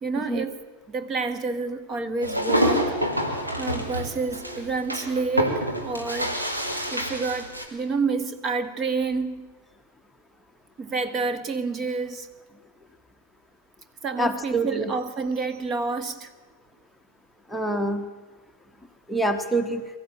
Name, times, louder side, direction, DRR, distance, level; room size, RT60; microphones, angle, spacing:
voice 1, 0.0-0.6 0.9-2.9 3.6-6.4 6.9-9.5 10.8-12.3 14.0-16.3, right 4 dB, 30° right, 1.4 m, -29 dB
sound 1, 2.2-7.7, equal, 80° right, 3.0 m, -27 dB
voice 2, 14.2-14.9 17.5-18.0 19.1-19.8, right 1 dB, 5° left, 1.1 m, -25 dB
23.5 x 14.5 x 8.8 m
figure-of-eight pair, 90°, 0 cm